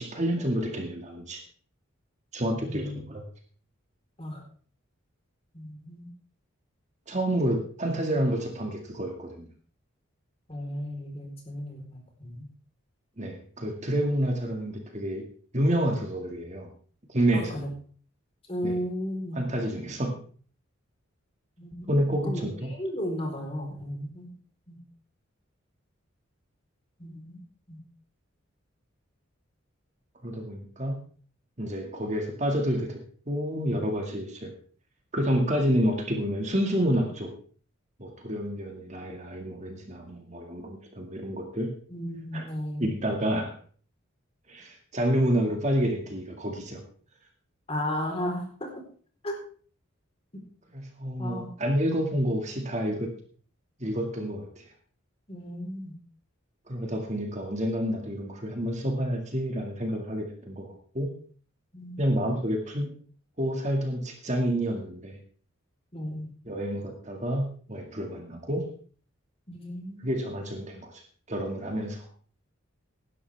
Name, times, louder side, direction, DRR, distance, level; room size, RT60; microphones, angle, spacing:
voice 1, 0.0-1.4 2.3-3.2 7.1-9.5 13.2-15.3 15.5-16.7 17.1-17.7 18.6-18.7 19.3-20.2 21.9-22.7 30.2-31.0 31.6-34.5 35.1-37.3 38.0-41.8 42.3-42.5 42.8-43.6 44.5-46.8 50.7-53.1 53.8-54.7 56.7-61.1 62.0-63.0 63.4-65.2 66.5-68.7 70.0-71.0 71.3-72.1, equal, 35° right, 2 dB, 2.1 m, -29 dB
voice 2, 2.6-3.0 4.2-4.4 5.5-6.1 10.5-12.5 17.3-17.7 18.5-19.4 21.6-22.4 22.7-24.3 24.7-24.8 27.0-27.4 27.7-27.8 41.9-42.9 47.7-48.7 49.2-49.4 51.2-51.5 55.3-55.9 61.7-62.3 65.9-66.3 69.5-70.1, equal, 25° left, 1 dB, 4.1 m, -35 dB
17.5 x 11.5 x 3.5 m, 0.43 s
head